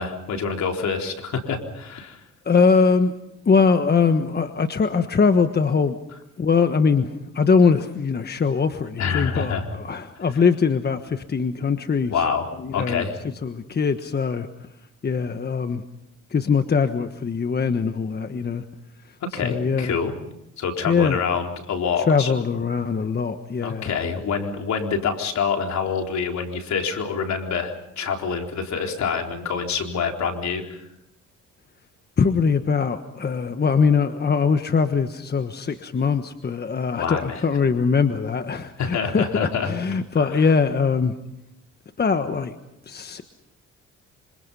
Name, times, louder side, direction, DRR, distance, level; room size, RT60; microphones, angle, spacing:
voice 1, 0.0-2.2 9.0-9.7 12.1-13.2 19.2-20.1 20.6-22.3 23.6-30.9 37.0-37.4 38.8-39.7 40.2-40.5, left 6 dB, 65° left, 3 dB, 4.1 m, -26 dB
voice 2, 2.4-3.1 3.4-6.0 6.4-12.1 12.6-13.0 13.4-14.5 15.0-15.8 16.3-18.6 19.4-20.0 20.9-21.2 22.1-23.9 32.2-41.1 42.0-42.6 42.9-43.2, left 5 dB, 35° left, 8 dB, 1.3 m, -22 dB
27.0 x 26.0 x 5.6 m, 0.81 s
cardioid pair, 90°, 30 cm